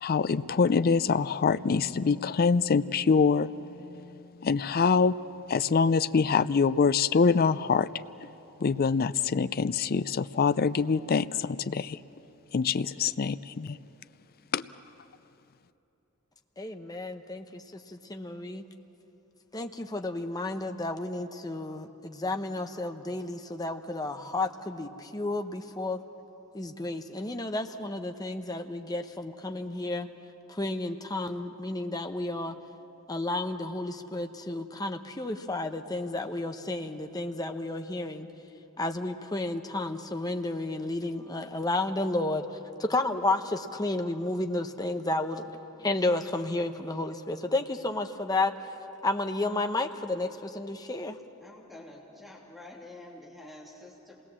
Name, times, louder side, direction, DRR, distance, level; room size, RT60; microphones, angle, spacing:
voice 1, 0.0-5.2 5.5-7.9 8.6-12.0 12.5-13.8 14.5-14.7, left 5 dB, 45° left, 15 dB, 0.5 m, -25 dB
voice 2, 16.6-18.6 19.5-26.0 26.5-30.1 30.5-32.6 33.1-38.3 38.8-42.5 42.8-45.5 45.8-48.8 49.0-51.2, left 2 dB, 15° left, 6 dB, 0.9 m, -32 dB
voice 3, 51.4-54.2, left 2 dB, ahead, -3 dB, 3.1 m, -48 dB
26.5 x 20.0 x 7.4 m, 3.0 s
head